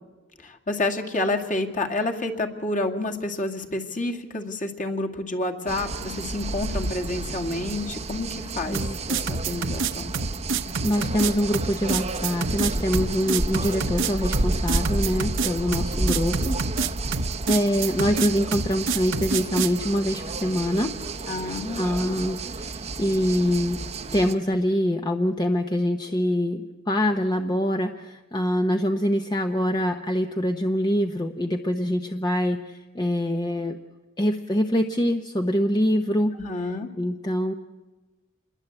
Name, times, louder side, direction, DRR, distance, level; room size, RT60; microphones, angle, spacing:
voice 1, 0.4-8.8 9.1-10.1 21.3-22.2 36.4-36.9, left 2 dB, 40° left, 2 dB, 2.3 m, -29 dB
sound 1, 5.7-24.3, right 2 dB, 30° right, 0.9 m, -31 dB
voice 2, 8.7-9.0 9.6-9.9 10.8-16.6 17.5-20.9 21.2-23.8 24.1-33.8 34.2-37.5, equal, 20° left, 5 dB, 0.9 m, -25 dB
sound 2, 8.7-19.8, right 4 dB, 65° right, 1.0 m, -27 dB
27.5 x 21.5 x 8.0 m, 1.2 s
head